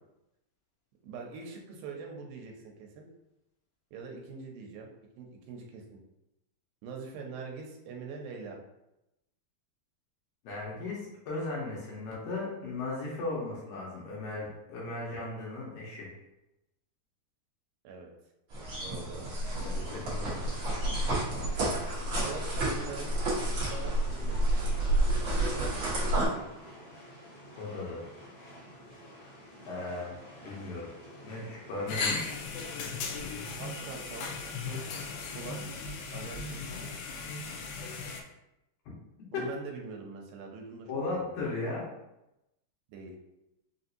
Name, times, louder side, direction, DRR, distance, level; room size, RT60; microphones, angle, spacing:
voice 1, 1.0-3.1 3.9-4.9 5.2-5.8 6.8-8.6 17.8-18.1 18.8-19.3 22.2-23.4 23.7-24.5 25.9-26.5 33.6-34.3 34.6-34.8 35.3-35.6 36.1-36.9 39.3-41.5 42.9-43.2, right 4 dB, 90° right, 1 dB, 2.4 m, -43 dB
voice 2, 10.4-16.1 19.6-20.4 27.6-28.0 29.7-30.2 30.4-30.9 31.2-32.3 39.3-39.4 40.9-41.8, left 2 dB, 70° left, -4 dB, 2.4 m, -36 dB
sound 1, 18.5-26.3, right 1 dB, 55° right, 1.5 m, -30 dB
sound 2, 19.7-35.4, equal, 55° left, 1.1 m, -50 dB
sound 3, 31.9-38.2, left 4 dB, 90° left, 2.4 m, -37 dB
5.7 x 2.6 x 2.7 m, 0.90 s
omnidirectional pair, 4.1 m